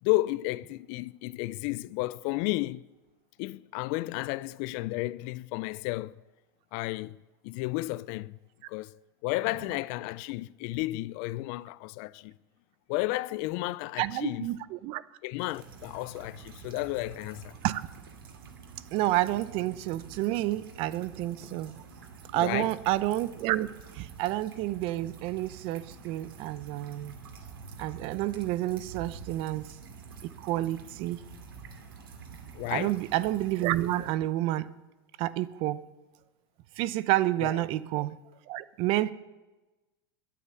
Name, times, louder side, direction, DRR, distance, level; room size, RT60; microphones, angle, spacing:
voice 1, 0.0-2.8 3.4-6.2 6.7-8.4 8.7-8.9 9.2-12.3 12.9-14.5 15.2-17.5 22.3-22.7 32.5-33.0 37.4-37.6, left 19 dB, 55° left, 0.5 m, -32 dB
voice 2, 14.0-15.0 17.6-17.8 18.9-21.8 22.3-23.7 23.9-27.1 27.8-29.7 30.2-31.2 32.7-34.7 35.2-35.8 36.8-38.2 38.5-39.1, right 15 dB, 50° right, 0.7 m, -29 dB
sound 1, 15.4-34.1, right 5 dB, 85° right, 2.3 m, -48 dB
21.5 x 8.6 x 6.9 m
hypercardioid pair, 100°, 12 cm